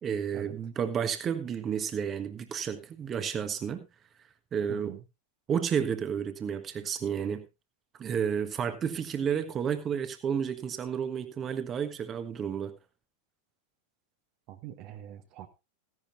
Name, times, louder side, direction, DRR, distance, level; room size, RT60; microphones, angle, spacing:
voice 1, 0.0-3.8 4.5-4.9 5.5-7.4 8.0-12.7, right 7 dB, 25° right, 1.4 m, -31 dB
voice 2, 4.7-5.0 14.5-15.5, right 12 dB, 40° right, 1.4 m, -43 dB
15.5 x 11.0 x 2.7 m
figure-of-eight pair, 90°, 0 cm